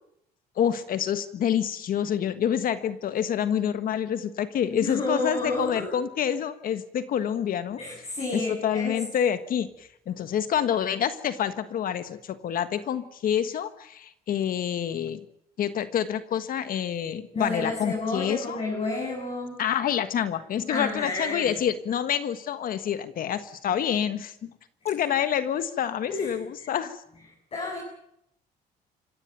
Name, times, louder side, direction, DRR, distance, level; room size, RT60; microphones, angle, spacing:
voice 1, 0.6-8.0 8.3-15.2 15.6-18.6 19.6-24.5 24.8-27.0, left 9 dB, 55° left, 11 dB, 1.5 m, -27 dB
voice 2, 4.7-5.9 7.8-9.0 17.3-19.6 20.7-21.6 26.1-26.3 27.5-27.8, left 2 dB, 35° left, 0 dB, 7.9 m, -30 dB
27.0 x 16.0 x 9.1 m, 0.78 s
cardioid pair, 110°, 17 cm